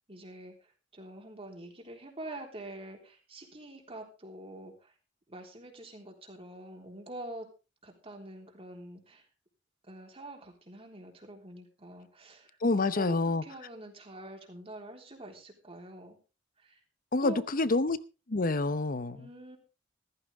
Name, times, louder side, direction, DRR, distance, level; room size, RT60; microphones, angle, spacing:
voice 1, 0.1-4.9 5.3-7.5 7.8-9.3 9.9-16.2 16.6-16.8 17.2-17.4 19.1-19.6, right 1 dB, 30° right, 2 dB, 3.6 m, -46 dB
voice 2, 12.6-13.4 17.1-18.0 18.3-19.3, left 2 dB, 50° left, 15 dB, 0.8 m, -27 dB
15.0 x 14.5 x 3.5 m, 0.32 s
head